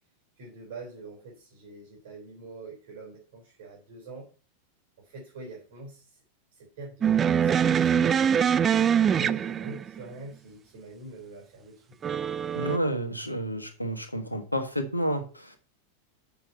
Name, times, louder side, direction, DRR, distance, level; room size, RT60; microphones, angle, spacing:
voice 1, 0.4-4.3 5.0-6.2 6.5-8.5 9.1-12.0, right 2 dB, 55° right, 0 dB, 4.2 m, -44 dB
sound 1, 7.0-10.0 12.0-12.8, right 8 dB, 25° right, 0.4 m, -23 dB
voice 2, 12.5-15.6, equal, 85° left, 6 dB, 1.3 m, -30 dB
7.1 x 5.9 x 5.4 m, 0.37 s
figure-of-eight pair, 90°, 0 cm